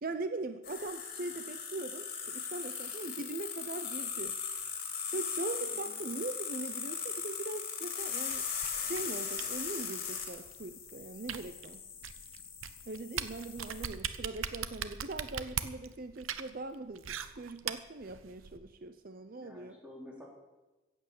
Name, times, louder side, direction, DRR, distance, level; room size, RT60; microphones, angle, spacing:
voice 1, 0.0-4.4 5.1-8.5 8.8-11.8 12.9-19.8, right 2 dB, 45° right, 10 dB, 0.6 m, -41 dB
sound 1, 0.6-13.9, left 7 dB, 45° left, 3.0 m, -39 dB
voice 2, 5.6-6.0 13.7-13.8 19.3-20.3, left 1 dB, 5° right, -2 dB, 3.5 m, -52 dB
sound 2, 8.3-18.6, right 8 dB, 90° right, 0.9 m, -41 dB
15.0 x 8.2 x 8.7 m, 1.1 s
head